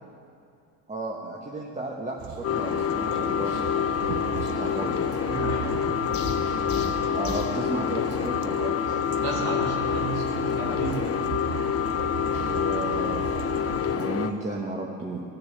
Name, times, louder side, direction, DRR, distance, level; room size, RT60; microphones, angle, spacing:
voice 1, 0.9-5.0 7.1-8.7 12.5-13.4 13.9-15.2, right 2 dB, 20° right, -2 dB, 1.5 m, -34 dB
sound 1, 2.2-14.0, right 10 dB, 50° right, 0.6 m, -38 dB
sound 2, 2.4-14.3, left 8 dB, 40° left, 0.8 m, -27 dB
voice 2, 5.3-6.1 9.2-11.2, right 3 dB, 85° right, -2 dB, 2.5 m, -33 dB
sound 3, 6.1-7.6, left 5 dB, 60° left, 1.6 m, -34 dB
17.0 x 6.6 x 6.8 m, 2.5 s
supercardioid pair, 90°, 39 cm